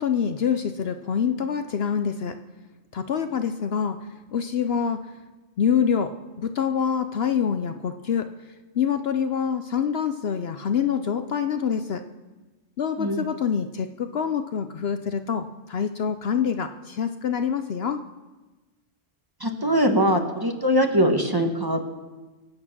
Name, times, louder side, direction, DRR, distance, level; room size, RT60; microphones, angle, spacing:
voice 1, 0.0-2.4 2.9-4.0 4.3-5.0 5.6-8.3 8.7-12.0 12.8-18.0, left 7 dB, 60° left, 8 dB, 0.8 m, -26 dB
voice 2, 19.4-21.8, equal, 20° right, 4 dB, 1.3 m, -22 dB
23.0 x 8.7 x 6.0 m, 1.2 s
omnidirectional pair, 1.3 m